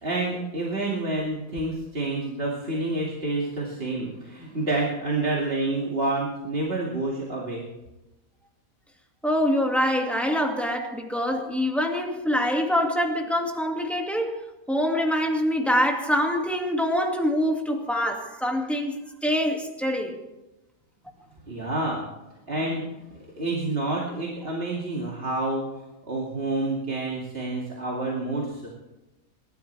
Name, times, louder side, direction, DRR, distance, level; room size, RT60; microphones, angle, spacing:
voice 1, 0.0-7.6 21.5-22.1 22.5-25.8 26.1-28.7, right 2 dB, 40° right, -4 dB, 2.7 m, -28 dB
voice 2, 9.2-14.4 14.7-20.2, equal, ahead, 1 dB, 2.2 m, -25 dB
28.5 x 12.5 x 3.4 m, 1.0 s
omnidirectional pair, 1.5 m